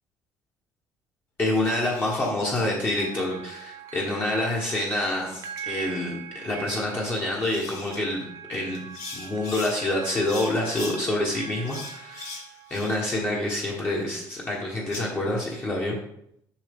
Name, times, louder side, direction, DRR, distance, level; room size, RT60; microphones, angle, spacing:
voice 1, 1.4-8.8 9.1-12.2 12.7-16.0, left 1 dB, 25° left, -3 dB, 1.2 m, -27 dB
sound 1, 1.6-2.6 4.2-5.2 5.6-5.7 7.0-7.1 7.4-8.0 8.7-9.7 10.2-11.0 11.6-13.2 13.5-15.0, left 3 dB, 45° left, 2.1 m, -41 dB
sound 2, 3.0-13.2, right 7 dB, 55° right, 0.9 m, -42 dB
7.1 x 6.2 x 3.5 m, 0.73 s
cardioid pair, 170°, 7 cm